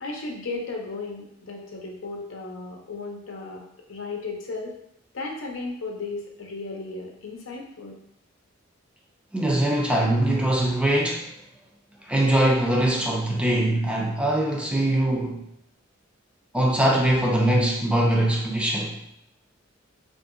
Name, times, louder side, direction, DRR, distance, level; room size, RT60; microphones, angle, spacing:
voice 1, 0.0-3.6 3.9-4.7 5.1-8.0, left 3 dB, 80° left, 0 dB, 0.6 m, -35 dB
voice 2, 9.3-11.3 12.1-15.4 16.5-18.9, right 1 dB, 5° right, -2 dB, 0.4 m, -22 dB
2.7 x 2.5 x 2.5 m, 0.77 s
head